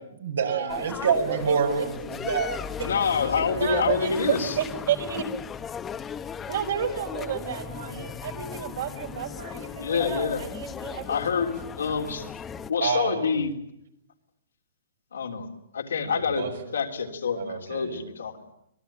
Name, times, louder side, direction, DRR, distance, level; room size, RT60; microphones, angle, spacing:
voice 1, 0.2-3.5 12.8-13.3 16.0-16.8 17.3-18.0, right 6 dB, 85° right, 3 dB, 6.0 m, -28 dB
sound 1, 0.7-12.7, left 7 dB, 15° left, 1.0 m, -36 dB
voice 2, 2.8-4.6 9.8-10.4 11.1-12.3 12.7-13.5 15.1-15.5 15.7-18.4, left 6 dB, 90° left, 3 dB, 3.5 m, -27 dB
voice 3, 3.5-5.2 6.5-11.1, right 9 dB, 65° right, 4 dB, 4.8 m, -31 dB
25.5 x 20.0 x 9.0 m, 0.80 s
hypercardioid pair, 145°, 0 cm